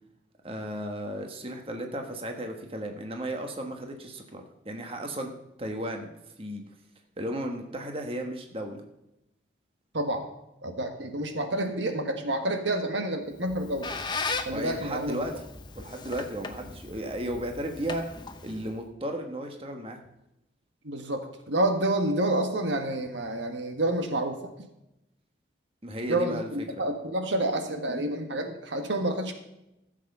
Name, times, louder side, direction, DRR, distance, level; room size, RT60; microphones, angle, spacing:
voice 1, 0.4-5.3 5.6-6.1 6.4-6.6 7.2-8.8 14.5-15.3 15.7-18.0 18.4-20.0 25.8-26.8, right 1 dB, 30° right, 4 dB, 1.4 m, -34 dB
voice 2, 9.9-10.3 10.6-13.9 14.5-15.2 20.8-24.4 26.1-29.3, right 1 dB, 85° right, 6 dB, 1.6 m, -29 dB
Squeak, 13.3-18.8, left 4 dB, 25° left, 0.8 m, -37 dB
14.5 x 7.6 x 5.5 m, 0.88 s
head